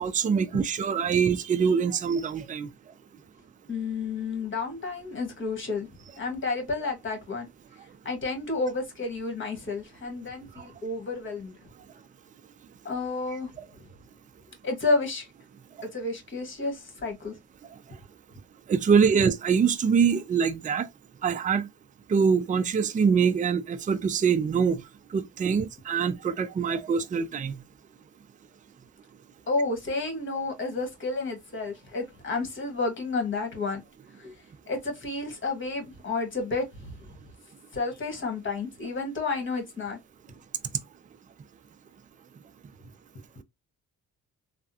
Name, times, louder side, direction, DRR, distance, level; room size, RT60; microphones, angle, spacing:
voice 1, 0.0-2.7 18.7-20.9 21.2-21.7 22.1-24.8 25.1-27.6, right 6 dB, 25° right, 0.4 m, -24 dB
voice 2, 3.7-5.9 6.2-7.5 8.0-11.5 12.8-13.5 14.6-15.3 15.9-17.3 29.5-33.8 34.2-34.3 34.7-37.0 37.7-40.0, left 3 dB, 40° left, 1.5 m, -31 dB
3.4 x 2.1 x 2.8 m
cardioid pair, 90°, 30 cm